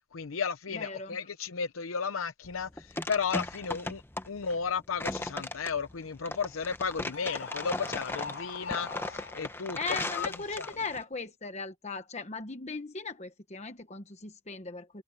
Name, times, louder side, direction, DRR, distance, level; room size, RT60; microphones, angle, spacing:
voice 1, 0.1-9.8 10.1-10.7, left 6 dB, 85° left, 0.7 m, -34 dB
voice 2, 0.7-1.2 9.8-15.0, left 4 dB, 35° left, 1.1 m, -38 dB
sound 1, 2.4-11.0, left 2 dB, 10° left, 0.9 m, -37 dB
Screaming, 7.1-9.8, left 5 dB, 60° left, 4.4 m, -42 dB
head